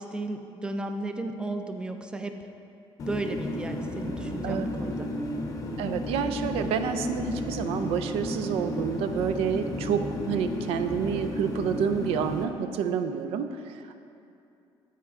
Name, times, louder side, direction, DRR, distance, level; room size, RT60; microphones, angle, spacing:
voice 1, 0.0-2.4 3.1-5.1, right 2 dB, 10° right, 6 dB, 0.3 m, -34 dB
sound 1, 3.0-12.4, left 1 dB, 35° left, 0.6 m, -33 dB
voice 2, 4.4-4.8 5.8-14.0, right 7 dB, 85° right, 9 dB, 0.4 m, -29 dB
9.3 x 4.4 x 3.6 m, 2.6 s
cardioid pair, 155°, 10 cm